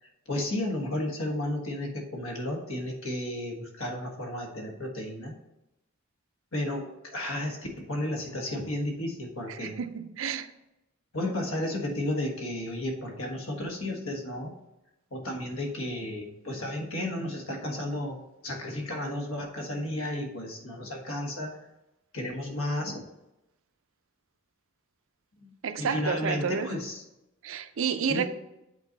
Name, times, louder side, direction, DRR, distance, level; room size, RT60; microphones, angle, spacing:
voice 1, 0.0-5.3 6.5-9.7 11.1-14.5 15.1-21.6 22.1-23.0 25.4-27.0 28.1-28.3, left 1 dB, 70° left, 1.5 m, -33 dB
voice 2, 9.5-10.5 25.6-26.7 27.4-28.3, right 6 dB, 65° right, 0.5 m, -30 dB
8.1 x 4.2 x 4.0 m
head